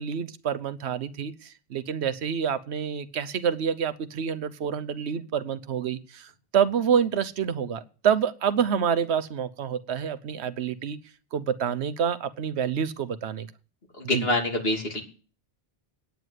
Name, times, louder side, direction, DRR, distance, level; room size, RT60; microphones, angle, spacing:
voice 1, 0.0-11.0 11.3-13.5 14.0-14.3, right 7 dB, 80° right, 14 dB, 1.1 m, -27 dB
voice 2, 14.0-15.0, left 1 dB, 65° left, 1 dB, 3.0 m, -26 dB
9.3 x 9.3 x 8.1 m, 0.38 s
omnidirectional pair, 1.1 m